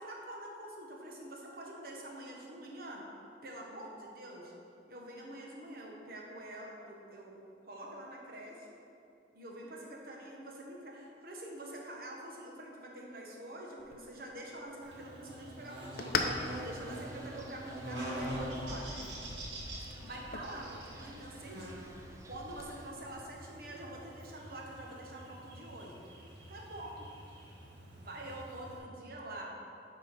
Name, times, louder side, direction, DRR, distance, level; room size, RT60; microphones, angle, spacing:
voice 1, 0.0-3.1 3.4-4.5 4.9-8.7 9.3-16.2 16.5-19.0 20.0-21.8 22.2-26.0 26.5-26.9 28.0-29.5, right 1 dB, 55° right, -1 dB, 1.2 m, -46 dB
sound 1, 13.8-22.8, left 4 dB, 55° left, 0.6 m, -43 dB
Buzz, 14.8-28.8, right 1 dB, 70° right, 1.5 m, -45 dB
Wind, 16.3-22.9, right 1 dB, 15° right, 0.5 m, -51 dB
7.6 x 5.1 x 5.1 m, 2.6 s
head